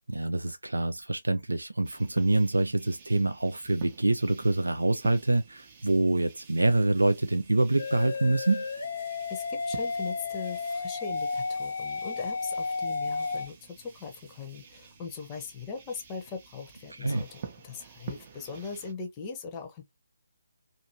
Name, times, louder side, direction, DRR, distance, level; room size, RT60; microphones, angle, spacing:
voice 1, 0.1-8.7 16.9-17.2, right 2 dB, 75° right, 0.4 m, -26 dB
sound 1, 1.8-18.9, right 7 dB, 30° right, 0.6 m, -49 dB
sound 2, 7.8-13.5, left 4 dB, 60° left, 0.6 m, -32 dB
voice 2, 9.0-19.8, left 5 dB, 20° left, 0.7 m, -40 dB
2.6 x 2.6 x 2.7 m
figure-of-eight pair, 145°, 0 cm